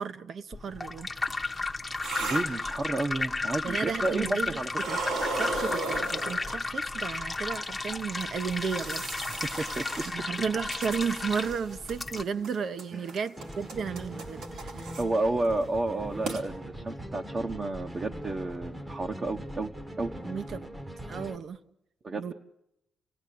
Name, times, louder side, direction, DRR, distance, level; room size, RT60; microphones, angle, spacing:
voice 1, 0.0-1.7 3.6-5.0 5.4-9.5 10.0-14.9 20.2-20.7 21.0-21.6 22.2-22.3, right 6 dB, 55° right, 1.0 m, -34 dB
sound 1, 0.5-12.2, left 3 dB, 15° left, 1.0 m, -33 dB
sound 2, 1.3-3.3 3.9-4.4 4.7-6.9 7.5-7.6 8.2-11.6 11.9-12.5 12.8-15.0 15.4-15.6 15.9-16.0 16.3-16.4, right 3 dB, 85° right, 3.4 m, -36 dB
voice 2, 2.2-4.7 9.3-10.1 12.9-13.0 15.0-19.7 20.0-20.1 22.0-22.3, right 2 dB, 30° right, 1.1 m, -31 dB
sound 3, 13.4-21.4, equal, 10° right, 1.1 m, -41 dB
30.0 x 17.0 x 8.6 m
cardioid pair, 115°, 0 cm